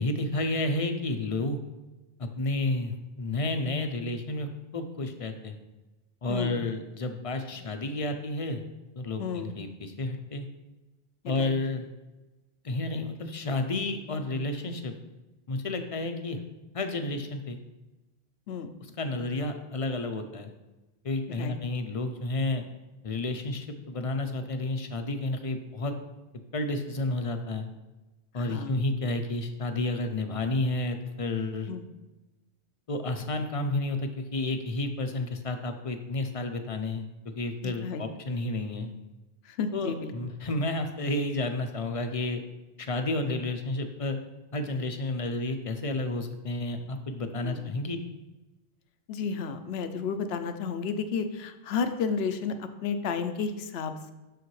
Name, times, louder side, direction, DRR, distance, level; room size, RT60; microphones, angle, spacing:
voice 1, 0.0-1.6 2.2-5.6 6.2-8.6 8.9-10.5 11.3-11.9 12.6-14.9 15.5-16.4 16.7-17.6 18.8-20.5 21.0-22.6 23.0-25.9 26.5-27.7 28.3-31.7 32.9-38.9 39.7-42.4 42.8-44.2 44.5-48.0, left 2 dB, 40° left, 6 dB, 0.6 m, -31 dB
voice 2, 9.2-9.5 11.2-11.5 18.5-18.7 21.3-21.6 28.4-28.7 31.7-31.8 37.6-38.0 39.5-40.1 47.4-47.6 49.1-54.1, left 5 dB, 75° left, 9 dB, 0.9 m, -32 dB
6.9 x 6.4 x 3.2 m, 1.1 s
omnidirectional pair, 1.1 m